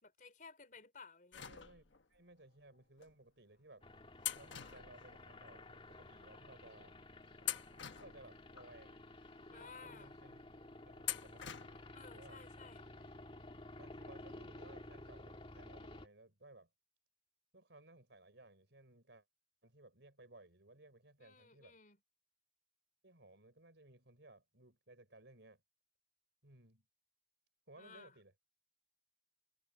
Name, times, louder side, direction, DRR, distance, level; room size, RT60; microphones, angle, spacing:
voice 1, 0.0-1.4 9.5-10.1 11.9-12.8 21.2-22.0 27.8-28.1, left 4 dB, 45° left, 4.0 m, -56 dB
sound 1, 1.3-2.2 3.0-3.1 4.2-5.6 5.9-6.0 6.8-7.0 7.4-8.7 9.2-9.3 11.0-12.0 12.3-12.4 13.6-13.7 14.0-14.1, left 12 dB, 85° left, 1.3 m, -45 dB
voice 2, 1.3-3.9 4.3-7.0 8.0-9.0 9.4-10.4 10.8-11.5 12.1-12.4 13.8-16.7 17.5-19.2 19.6-21.8 23.0-25.6 26.4-26.8 27.7-28.3, right 2 dB, 75° right, 4.8 m, -60 dB
sound 2, 3.8-16.1, left 2 dB, 30° left, 2.1 m, -54 dB
head